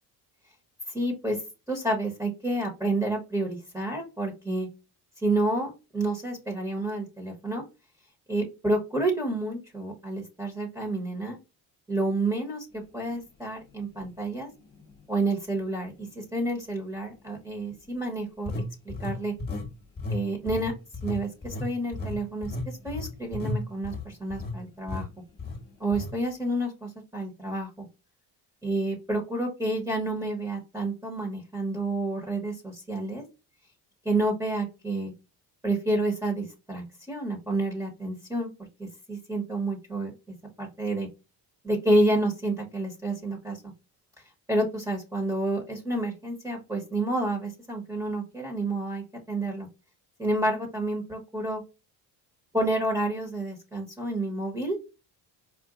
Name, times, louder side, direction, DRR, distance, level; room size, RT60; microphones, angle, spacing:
voice 1, 0.9-1.4 1.7-4.7 5.2-7.6 8.3-11.4 11.9-14.5 15.1-18.5 18.8-19.3 20.1-20.7 21.0-25.1 25.8-27.9 28.6-33.2 34.0-35.1 35.6-38.5 38.8-40.1 40.6-41.1 41.6-43.6 44.5-49.7 50.2-51.6 52.5-54.8, right 2 dB, 10° right, 1 dB, 1.2 m, -29 dB
sound 1, 14.0-14.1 14.7-14.9 18.5-19.7 20.0-20.2 20.5-24.6 24.9-25.1 25.4-25.6 25.9-26.1, left 2 dB, 25° left, 1.3 m, -33 dB
5.0 x 2.4 x 2.5 m, 0.28 s
cardioid pair, 110°, 42 cm